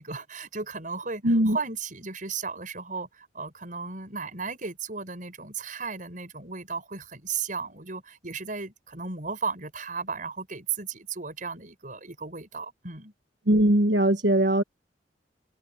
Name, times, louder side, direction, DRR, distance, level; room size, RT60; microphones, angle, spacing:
voice 1, 0.0-13.1, right 5 dB, 45° right, 6.7 m, -35 dB
voice 2, 1.2-1.6 13.5-14.6, right 1 dB, 75° right, 1.3 m, -20 dB
head